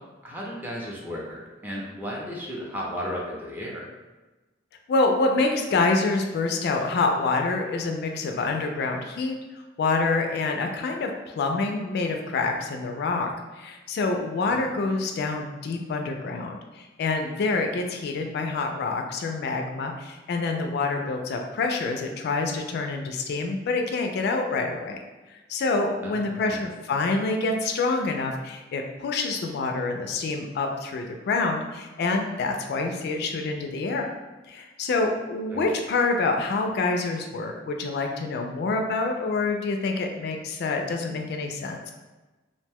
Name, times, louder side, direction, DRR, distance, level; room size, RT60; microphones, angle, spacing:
voice 1, 0.2-3.9 14.5-14.7 26.0-26.7 35.5-35.6, equal, 10° right, -4 dB, 0.5 m, -35 dB
voice 2, 4.9-9.3 9.8-13.3 13.6-25.0 25.3-34.0 34.5-41.9, left 3 dB, 60° left, 4 dB, 0.3 m, -27 dB
2.6 x 2.1 x 3.4 m, 1.2 s
head